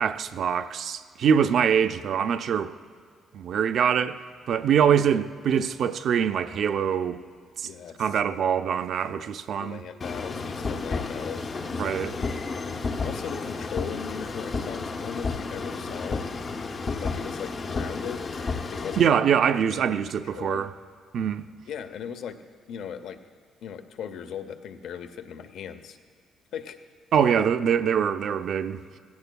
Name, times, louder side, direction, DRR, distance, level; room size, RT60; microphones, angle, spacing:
voice 1, 0.0-2.7 3.3-4.2 4.5-7.2 7.6-7.7 8.0-9.8 11.8-12.2 19.0-20.7 21.1-21.4 27.1-28.8, right 8 dB, 50° right, 0.4 m, -24 dB
voice 2, 7.6-8.2 9.6-11.5 13.0-16.3 17.0-18.3 18.7-19.2 19.7-20.7 21.7-22.4 22.7-23.2 23.6-26.0 26.5-26.8 27.4-27.5, left 8 dB, 65° left, 0.7 m, -38 dB
sound 1, 10.0-19.0, left 4 dB, 30° left, 0.6 m, -32 dB
18.0 x 16.5 x 2.2 m
cardioid pair, 170°, 0 cm